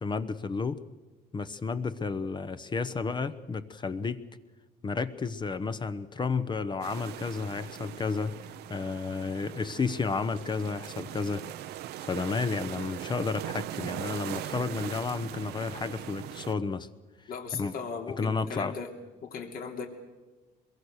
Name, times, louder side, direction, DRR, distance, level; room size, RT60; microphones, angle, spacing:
voice 1, 0.0-0.8 1.3-4.2 4.8-8.3 8.7-11.4 12.0-16.9 17.5-17.7 18.2-18.7, left 4 dB, 25° left, 12 dB, 1.0 m, -32 dB
sound 1, 6.8-16.5, right 13 dB, 75° right, 0.8 m, -40 dB
voice 2, 17.3-18.9 19.2-19.9, left 5 dB, 60° left, 3 dB, 3.1 m, -37 dB
24.0 x 22.5 x 6.5 m, 1.2 s
cardioid pair, 110°, 17 cm